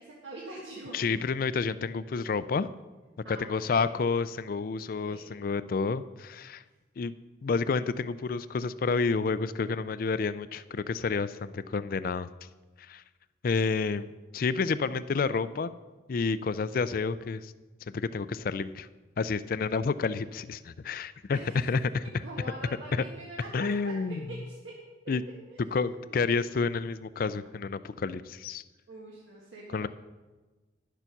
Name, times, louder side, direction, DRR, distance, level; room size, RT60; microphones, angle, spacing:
voice 1, 0.0-1.1 3.2-3.9 5.0-5.3 21.3-21.6 22.2-24.6 25.5-26.1 28.9-29.9, right 2 dB, 80° right, -4 dB, 1.7 m, -44 dB
voice 2, 0.9-2.7 3.3-6.6 7.0-7.1 7.4-12.3 12.8-13.0 13.4-15.7 16.1-17.5 17.9-18.9 19.2-22.0 22.9-23.0 23.5-24.3 25.1-25.2 25.7-28.6 29.7-29.9, left 4 dB, 50° left, 15 dB, 0.4 m, -29 dB
11.0 x 6.8 x 5.9 m, 1.2 s
head